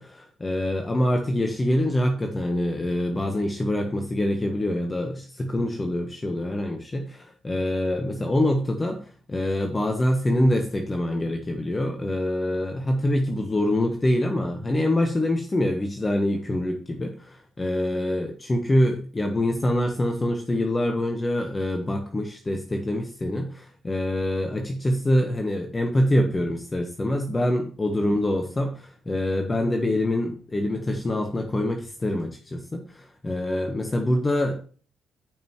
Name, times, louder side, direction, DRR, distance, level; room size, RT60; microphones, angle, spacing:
voice 1, 0.0-34.6, left 1 dB, 25° left, 5 dB, 1.2 m, -25 dB
13.5 x 5.4 x 3.0 m, 0.41 s
figure-of-eight pair, 40°, 0 cm